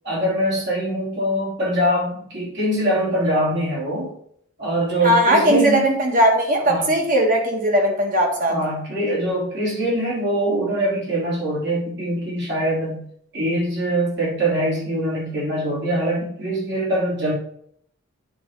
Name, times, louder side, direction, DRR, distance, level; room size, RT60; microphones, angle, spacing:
voice 1, 0.0-4.1 4.6-6.0 6.6-6.9 8.3-13.0 13.3-17.3, right 1 dB, 55° right, -5 dB, 3.4 m, -23 dB
voice 2, 5.0-8.5, right 1 dB, 40° right, 1 dB, 1.6 m, -18 dB
9.1 x 4.0 x 4.7 m, 0.66 s
head